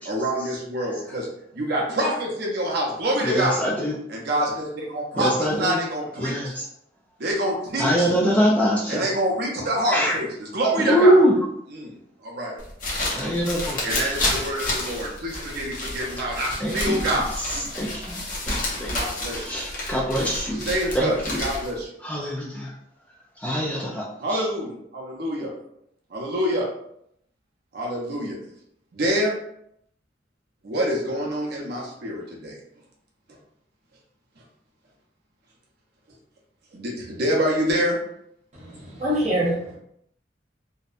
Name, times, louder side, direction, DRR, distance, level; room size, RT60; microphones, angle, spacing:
voice 1, 0.0-1.3 1.5-3.6 4.1-5.3 5.6-6.5 7.2-8.1 8.9-11.2 11.7-12.0 12.2-12.6 13.8-17.7 18.9-19.5 20.7-21.9 24.2-25.5 26.1-26.7 27.7-28.4 28.9-29.3 30.6-32.6 36.7-38.0, right 1 dB, 60° right, -2 dB, 0.6 m, -26 dB
voice 2, 3.2-4.0 5.1-5.8 6.2-6.7 7.8-9.1 9.9-10.2 10.8-11.3 13.1-14.4 16.6-18.9 19.4-20.6 20.9-21.4 22.0-22.7 23.4-24.5, equal, 10° left, -3 dB, 0.3 m, -24 dB
sound 1, 12.6-21.8, left 2 dB, 50° left, 0.7 m, -30 dB
voice 3, 38.5-39.8, equal, 40° right, -5 dB, 0.9 m, -25 dB
2.6 x 2.1 x 2.4 m, 0.74 s
head